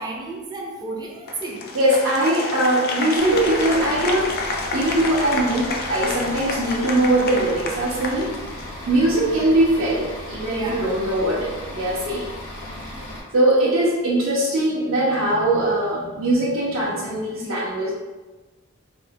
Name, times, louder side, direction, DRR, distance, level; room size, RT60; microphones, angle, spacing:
voice 1, 0.0-1.6 10.4-10.9, right 2 dB, 20° right, -1 dB, 0.5 m, -32 dB
Applause, 1.3-8.8, left 3 dB, 50° left, 0.4 m, -29 dB
voice 2, 1.7-4.3 4.7-8.3 8.9-12.2 13.3-17.9, right 1 dB, 70° right, -10 dB, 0.8 m, -21 dB
Bus / Idling, 3.2-13.2, left 1 dB, 85° left, 0.9 m, -36 dB
4.6 x 2.2 x 2.6 m, 1.2 s
head